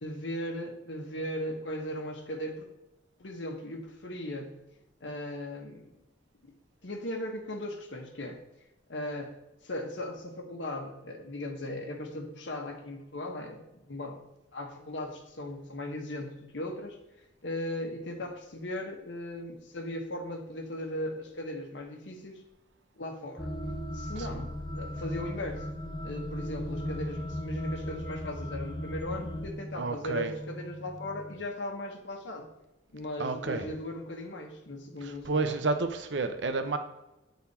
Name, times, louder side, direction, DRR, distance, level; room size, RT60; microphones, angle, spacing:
voice 1, 0.0-2.7 3.2-4.5 5.0-5.9 6.8-8.4 8.9-9.3 9.6-14.2 14.5-17.0 17.4-22.4 23.0-23.5 23.9-25.6 26.0-32.5 32.9-35.6, left 1 dB, 70° left, 3 dB, 1.1 m, -38 dB
sound 1, 23.4-29.5, left 1 dB, 25° left, 0.5 m, -37 dB
sound 2, 23.4-31.4, right 1 dB, 10° right, 0.7 m, -43 dB
voice 2, 24.2-24.5 29.7-30.3 33.2-33.7 35.0-36.8, right 3 dB, 70° right, 8 dB, 0.7 m, -31 dB
8.1 x 4.1 x 4.2 m, 0.93 s
head